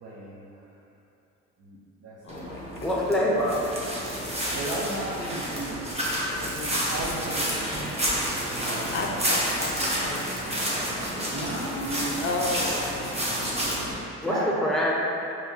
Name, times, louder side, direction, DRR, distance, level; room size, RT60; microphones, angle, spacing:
voice 1, 0.0-0.5 1.6-2.5 4.5-5.8 6.9-7.7 8.5-9.1 11.3-12.1 14.3-14.5, right 1 dB, 55° right, -7 dB, 0.7 m, -34 dB
voice 2, 2.2-3.1 6.4-6.8 8.9-11.0 12.0-12.9 14.2-14.5, left 3 dB, 40° left, 1 dB, 0.5 m, -34 dB
sound 1, 2.3-13.9, equal, 20° right, 0.9 m, -29 dB
voice 3, 2.8-3.6 7.6-8.1 14.2-14.9, equal, ahead, -4 dB, 0.7 m, -26 dB
4.6 x 3.0 x 2.7 m, 2.8 s
cardioid pair, 90°, 30 cm